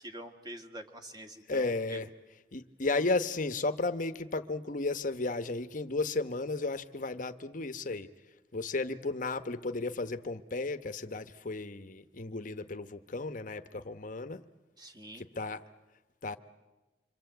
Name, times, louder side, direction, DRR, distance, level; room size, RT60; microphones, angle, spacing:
voice 1, 0.0-2.0 14.8-15.2, right 1 dB, 25° right, 5 dB, 1.9 m, -46 dB
voice 2, 1.5-2.1 2.5-8.1 8.5-14.4 15.1-15.6 16.2-16.4, left 3 dB, 50° left, 9 dB, 1.0 m, -34 dB
26.0 x 26.0 x 8.0 m, 1.2 s
head